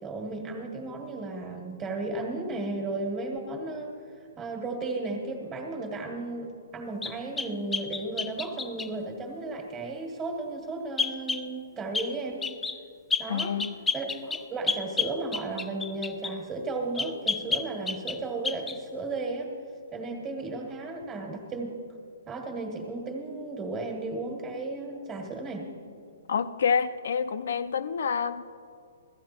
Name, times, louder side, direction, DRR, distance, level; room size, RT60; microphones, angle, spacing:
voice 1, 0.0-3.9 4.3-12.5 13.2-13.6 13.9-19.5 19.9-21.8 22.3-25.7, right 2 dB, 15° right, 1 dB, 1.8 m, -34 dB
sound 1, 7.0-8.9 11.0-11.5 11.9-12.1 12.4-12.8 13.1-16.4 17.0-18.2 18.4-18.8, left 5 dB, 5° left, 0.4 m, -30 dB
voice 2, 13.3-13.8 26.3-28.4, left 6 dB, 65° left, 13 dB, 0.7 m, -28 dB
16.5 x 14.0 x 4.4 m, 2.3 s
hypercardioid pair, 160°, 0 cm